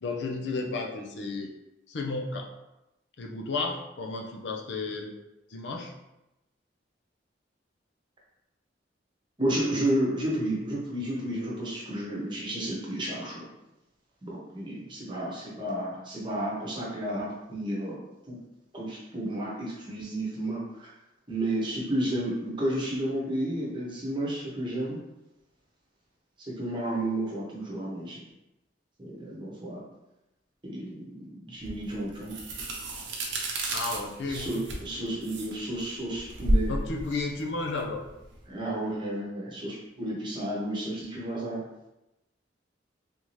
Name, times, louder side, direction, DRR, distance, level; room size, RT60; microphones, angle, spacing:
voice 1, 0.0-1.5 1.9-2.5 3.2-5.1 5.5-5.9 33.7-34.5 36.7-38.1, left 3 dB, 65° left, 1 dB, 0.5 m, -33 dB
voice 2, 9.4-13.4 14.2-18.0 18.3-18.4 18.7-20.9 21.3-25.0 26.4-28.2 29.0-29.8 30.6-32.3 34.3-36.7 38.5-41.6, right 1 dB, 25° right, -4 dB, 0.9 m, -32 dB
sound 1, 31.6-38.4, right 1 dB, 85° right, 0.7 m, -32 dB
3.5 x 2.7 x 3.1 m, 0.93 s
head